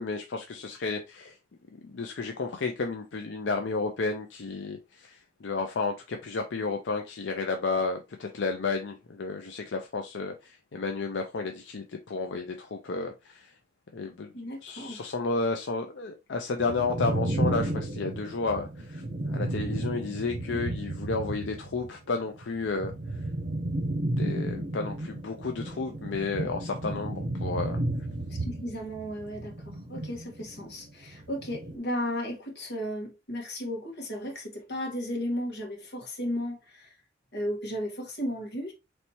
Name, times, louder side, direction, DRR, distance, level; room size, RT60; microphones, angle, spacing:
voice 1, 0.0-1.3 1.8-13.5 13.9-14.3 14.6-22.9 24.2-27.8, left 4 dB, 80° left, 0.5 m, -32 dB
voice 2, 14.3-15.0 28.3-36.9 37.3-38.7, equal, 60° left, 1.6 m, -34 dB
sound 1, 16.6-21.9 22.2-30.8 31.1-31.8, right 1 dB, 70° right, 0.9 m, -33 dB
4.2 x 3.3 x 2.9 m
head